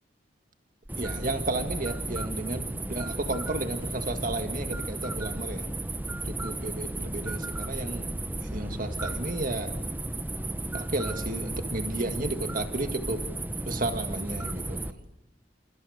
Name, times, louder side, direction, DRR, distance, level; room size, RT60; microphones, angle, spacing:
sound 1, 0.9-14.9, right 2 dB, 10° right, 0.8 m, -34 dB
voice 1, 1.0-5.7 6.2-8.1 8.4-9.7 10.7-13.2 13.7-15.0, right 2 dB, 45° right, 7 dB, 1.9 m, -33 dB
28.5 x 28.0 x 6.6 m, 1.0 s
head